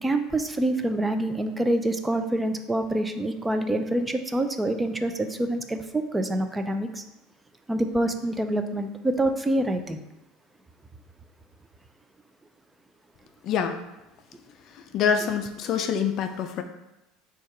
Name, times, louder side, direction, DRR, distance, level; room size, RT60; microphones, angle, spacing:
voice 1, 0.0-7.0 7.7-10.0, right 1 dB, 10° right, 7 dB, 0.4 m, -26 dB
voice 2, 13.4-13.8 14.9-16.6, left 7 dB, 50° left, 7 dB, 0.4 m, -25 dB
4.3 x 2.4 x 4.7 m, 0.96 s
supercardioid pair, 115°, 0 cm